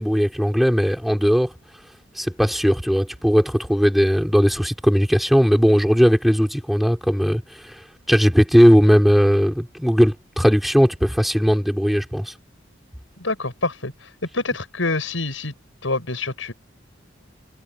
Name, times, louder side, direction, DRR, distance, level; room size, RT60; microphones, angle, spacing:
voice 1, 0.0-1.5 2.2-7.8 8.1-12.3, equal, ahead, 4.4 m, -18 dB
voice 2, 13.2-13.9 14.3-15.5 15.8-16.5, left 3 dB, 85° left, 6.0 m, -26 dB
head